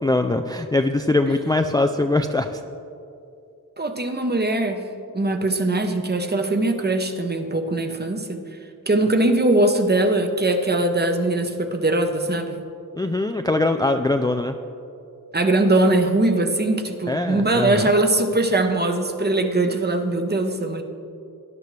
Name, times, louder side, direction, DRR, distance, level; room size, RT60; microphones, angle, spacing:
voice 1, 0.0-2.6 13.0-14.5 17.1-17.9, left 2 dB, 10° left, 5 dB, 0.4 m, -22 dB
voice 2, 3.8-4.8 5.1-8.4 8.9-12.6 15.3-20.8, right 2 dB, 30° right, 5 dB, 1.0 m, -21 dB
19.0 x 11.0 x 3.3 m, 2.6 s
wide cardioid pair, 105°, 35 cm